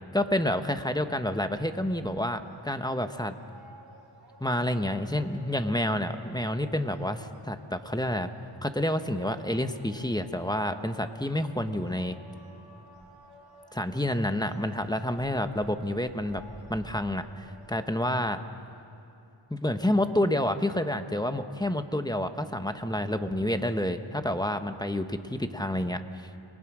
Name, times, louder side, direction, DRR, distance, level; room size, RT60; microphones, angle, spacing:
voice 1, 0.1-3.4 4.4-8.3 8.6-12.2 13.7-16.4 16.7-18.4 19.5-26.3, left 1 dB, 10° left, 8 dB, 1.2 m, -29 dB
sound 1, 1.3-18.1, right 1 dB, 50° right, 3.3 m, -54 dB
30.0 x 20.5 x 6.3 m, 2.8 s
wide cardioid pair, 50°, 49 cm